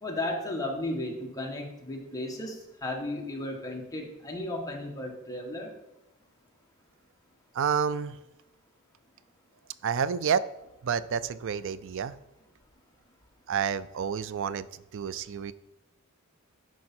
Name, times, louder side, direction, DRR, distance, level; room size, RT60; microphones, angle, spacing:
voice 1, 0.0-5.7, left 1 dB, 15° left, 0 dB, 1.4 m, -34 dB
voice 2, 7.5-8.2 9.8-10.4 10.8-12.2 13.5-15.5, right 7 dB, 60° right, 16 dB, 0.4 m, -29 dB
11.0 x 4.7 x 4.3 m, 0.92 s
head